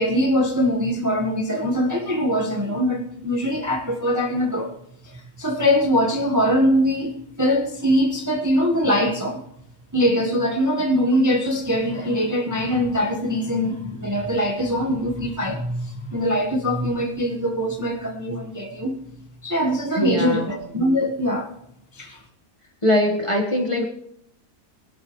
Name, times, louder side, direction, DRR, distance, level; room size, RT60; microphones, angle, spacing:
voice 1, 0.0-4.7 5.0-9.4 9.9-18.9 19.4-21.5 21.9-22.2, equal, 10° right, 1.2 m, -22 dB
voice 2, 19.9-20.5 22.8-23.8, left 1 dB, 20° left, 1.4 m, -22 dB
20.5 x 12.0 x 3.1 m
omnidirectional pair, 1.7 m